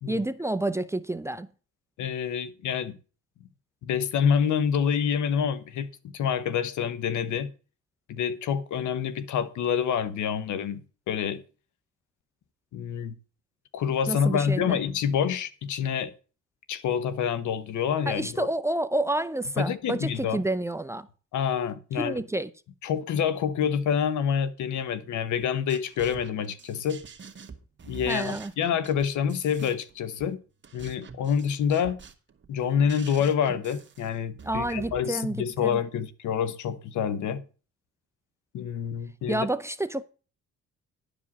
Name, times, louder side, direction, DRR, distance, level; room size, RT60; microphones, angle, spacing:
voice 1, 0.1-1.5 14.1-14.8 18.1-21.1 22.0-22.5 28.1-28.5 34.4-35.8 39.3-40.1, right 1 dB, 10° right, 0.5 m, -29 dB
voice 2, 2.0-3.0 3.8-5.9 6.1-7.5 8.1-10.8 11.1-11.4 12.7-13.1 13.7-16.1 16.7-18.5 19.6-20.4 21.3-22.2 22.8-27.0 27.8-30.4 30.7-32.0 32.5-37.4 38.5-39.5, left 7 dB, 75° left, 1.0 m, -27 dB
sound 1, 25.4-35.0, right 5 dB, 40° right, 1.5 m, -46 dB
11.0 x 5.1 x 7.0 m
cardioid pair, 90°, 30 cm